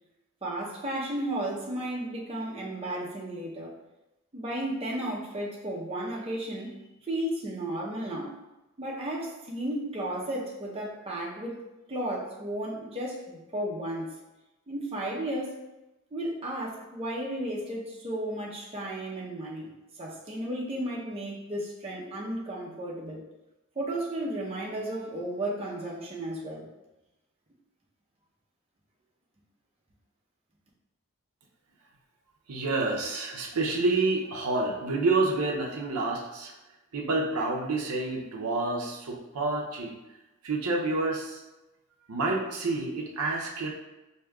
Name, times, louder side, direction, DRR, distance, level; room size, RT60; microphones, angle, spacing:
voice 1, 0.4-3.7 4.3-6.8 7.1-8.4 8.8-11.6 11.9-14.2 14.7-15.6 16.1-23.2 23.8-26.7, right 1 dB, 25° right, -4 dB, 0.6 m, -34 dB
voice 2, 32.5-36.5 36.9-39.9 40.4-41.4 42.1-43.7, right 3 dB, 85° right, 0 dB, 0.6 m, -28 dB
4.8 x 2.7 x 2.3 m, 1.0 s
head